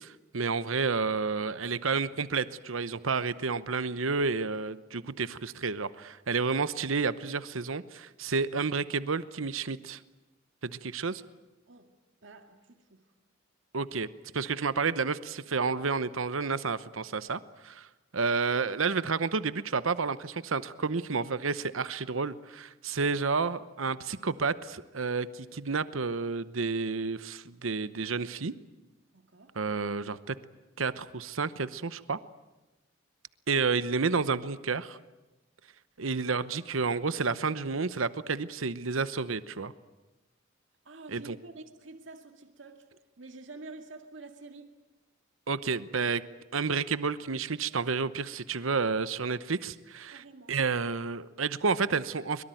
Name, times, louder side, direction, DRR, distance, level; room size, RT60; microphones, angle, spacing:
voice 1, 0.0-10.0 10.6-11.2 13.7-14.1 14.3-17.9 18.1-28.5 29.6-30.3 30.8-32.2 33.5-35.0 36.0-39.7 41.1-41.4 45.5-46.2 46.5-52.4, right 4 dB, 80° right, 0.9 m, -30 dB
voice 2, 12.2-13.1 29.1-29.6 40.9-42.9 43.2-44.7 49.2-49.4 50.1-50.6, right 3 dB, 65° right, 2.1 m, -48 dB
24.0 x 22.5 x 9.2 m
head